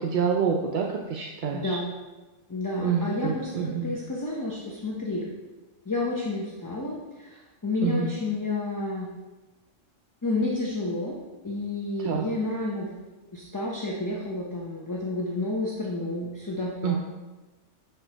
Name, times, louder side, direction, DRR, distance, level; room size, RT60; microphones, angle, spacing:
voice 1, 0.0-1.8 2.8-3.9 7.8-8.1 12.0-12.3 16.8-17.0, right 6 dB, 55° right, -1 dB, 0.6 m, -27 dB
voice 2, 1.5-1.9 2.5-5.3 5.9-9.1 10.2-11.2 11.4-12.9 13.3-17.0, left 2 dB, 20° left, -3 dB, 0.6 m, -30 dB
6.2 x 4.4 x 4.5 m, 1.2 s
omnidirectional pair, 1.3 m